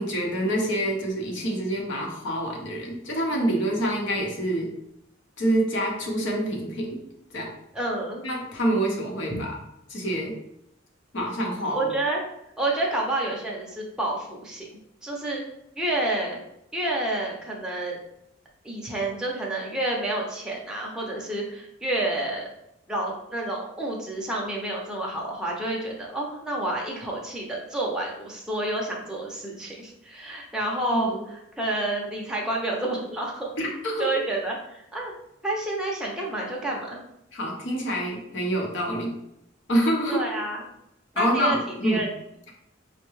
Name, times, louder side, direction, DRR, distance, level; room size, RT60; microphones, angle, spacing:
voice 1, 0.0-4.7 5.4-7.0 7.3-7.5 8.2-9.5 9.9-10.4 11.1-11.9 30.9-31.2 33.6-34.1 37.3-39.2 39.7-40.2 41.2-42.0, right 1 dB, 60° left, 0 dB, 0.8 m, -26 dB
voice 2, 7.7-8.3 9.3-9.4 11.7-12.2 12.6-15.4 15.8-16.4 16.7-18.0 18.6-22.5 22.9-33.5 34.0-35.1 35.4-37.0 40.1-40.7 41.1-42.1, right 2 dB, 5° right, -3 dB, 0.6 m, -29 dB
4.6 x 2.2 x 3.1 m, 0.80 s
head